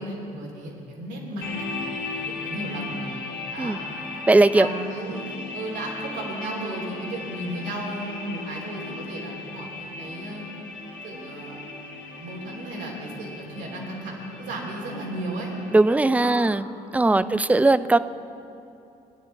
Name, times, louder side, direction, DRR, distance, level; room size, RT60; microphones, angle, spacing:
voice 1, 0.0-1.7 2.2-2.9 3.5-3.7 4.5-10.4 11.0-11.6 12.1-15.5 16.2-16.4 17.0-17.3, right 1 dB, 70° right, -2 dB, 3.0 m, -34 dB
sound 1, 1.4-15.9, left 3 dB, 75° left, 1.7 m, -37 dB
voice 2, 4.3-4.7 15.7-16.7 16.9-18.0, right 2 dB, 10° right, 15 dB, 0.4 m, -18 dB
18.0 x 10.0 x 4.1 m, 2.8 s
hypercardioid pair, 50°, 19 cm